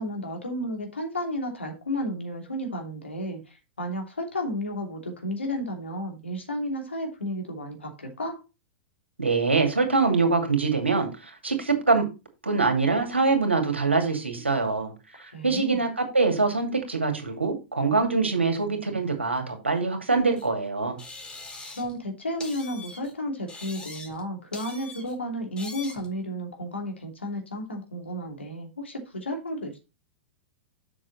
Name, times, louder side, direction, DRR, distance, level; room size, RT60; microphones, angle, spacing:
voice 1, 0.0-8.4 15.3-15.8 21.7-29.8, equal, 80° left, 2.9 m, -32 dB
voice 2, 9.2-12.1 12.4-21.0, right 4 dB, 85° right, 2.4 m, -24 dB
sound 1, 20.4-20.5 21.0-22.0 22.4-23.1 23.5-24.2 24.5-25.1 25.6-26.1, left 3 dB, 15° left, 2.2 m, -42 dB
7.5 x 6.3 x 4.1 m
figure-of-eight pair, 100°, 6 cm